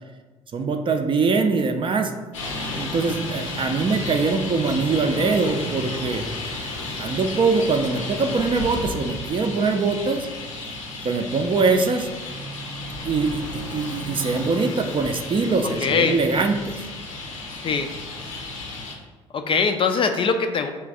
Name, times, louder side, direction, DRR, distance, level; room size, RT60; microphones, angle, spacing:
voice 1, 0.5-2.1 2.8-6.2 7.0-10.3 11.0-12.1 13.0-16.8, right 4 dB, 30° right, 6 dB, 0.5 m, -23 dB
Traffic noise roadway noise, 2.3-18.9, left 2 dB, 75° left, 0.7 m, -33 dB
voice 2, 15.8-16.2 17.6-17.9 19.3-20.7, left 5 dB, 35° left, 7 dB, 0.4 m, -21 dB
3.3 x 3.1 x 4.8 m, 1.2 s
figure-of-eight pair, 55°, 16 cm